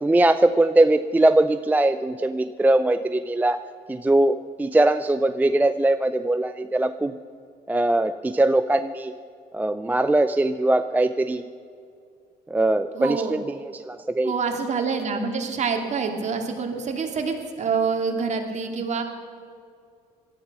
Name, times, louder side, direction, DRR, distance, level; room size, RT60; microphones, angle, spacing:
voice 1, 0.0-3.6 3.9-7.2 7.7-9.1 9.5-11.4 12.5-14.3, right 2 dB, 10° right, 10 dB, 0.4 m, -21 dB
voice 2, 12.9-13.3 14.2-19.0, right 5 dB, 45° right, 3 dB, 2.5 m, -26 dB
18.0 x 13.0 x 6.2 m, 2.4 s
cardioid pair, 110°, 17 cm